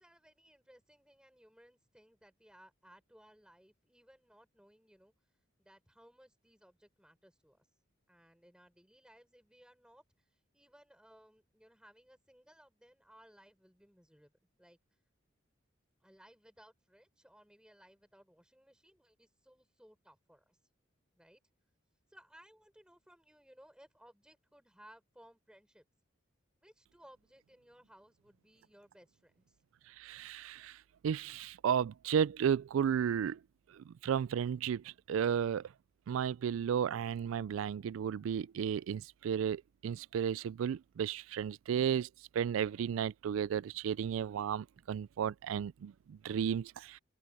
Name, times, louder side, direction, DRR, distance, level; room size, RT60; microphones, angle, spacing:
voice 1, 0.0-5.1 5.6-7.7 8.1-14.3 14.6-14.8 16.0-20.6 21.2-21.4 22.1-25.9 26.6-29.6, equal, 5° right, 6.4 m, -62 dB
voice 2, 30.0-30.7 31.0-33.4 34.0-35.6 36.1-42.1 42.3-47.0, right 8 dB, 80° right, 0.3 m, -33 dB
open air
head